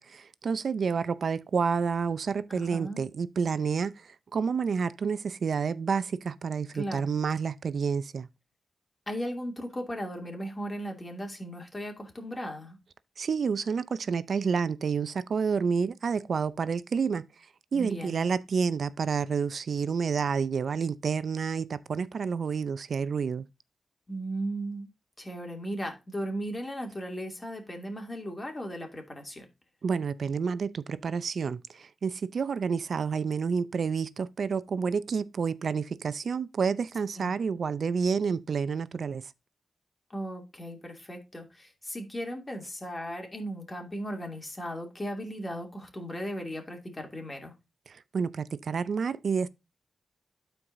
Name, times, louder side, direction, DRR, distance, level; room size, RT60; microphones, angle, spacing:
voice 1, 0.0-8.3 13.2-17.2 17.7-23.4 29.8-39.2 47.9-49.5, right 5 dB, 75° right, 0.5 m, -29 dB
voice 2, 2.5-3.0 6.7-7.1 9.1-12.8 17.7-18.3 24.1-24.9 25.2-29.5 37.2-37.3 40.1-47.5, equal, 30° left, 2.6 m, -37 dB
12.5 x 4.6 x 2.6 m
cardioid pair, 50°, 0 cm